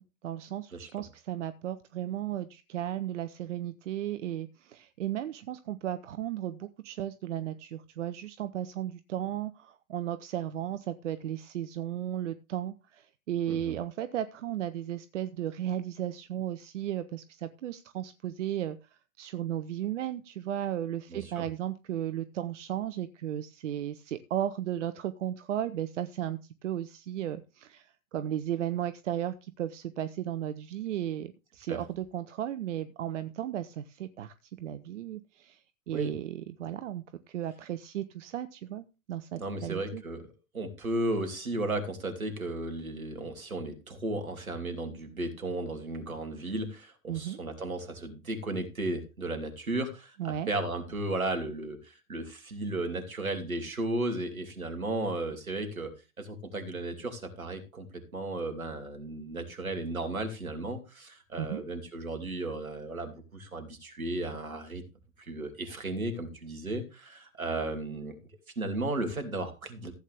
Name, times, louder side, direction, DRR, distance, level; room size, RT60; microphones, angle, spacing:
voice 1, 0.2-40.0 47.1-47.4 50.2-50.5 61.4-61.6, right 11 dB, 60° right, 12 dB, 0.8 m, -35 dB
voice 2, 21.1-21.5 31.7-31.8 35.9-36.1 39.4-55.9 56.2-64.8 65.2-68.2 68.6-69.9, right 2 dB, 80° right, 6 dB, 2.6 m, -35 dB
15.0 x 8.4 x 3.5 m, 0.29 s
figure-of-eight pair, 90°, 41 cm